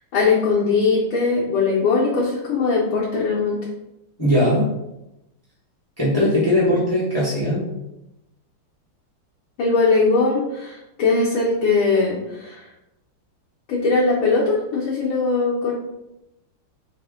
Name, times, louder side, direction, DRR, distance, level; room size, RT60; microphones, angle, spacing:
voice 1, 0.1-3.6 6.2-6.3 9.6-12.6 13.7-15.7, left 4 dB, 70° left, -5 dB, 1.4 m, -20 dB
voice 2, 4.2-4.6 6.0-7.6, left 1 dB, 10° left, -8 dB, 0.7 m, -19 dB
4.1 x 2.1 x 3.5 m, 0.91 s
omnidirectional pair, 2.4 m